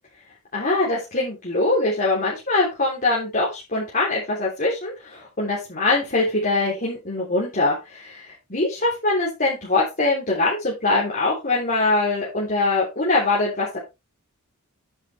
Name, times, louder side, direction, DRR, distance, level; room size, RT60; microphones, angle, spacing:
voice 1, 0.5-8.2 8.5-13.8, left 2 dB, 40° left, -5 dB, 3.3 m, -23 dB
9.8 x 8.0 x 3.4 m, 0.24 s
head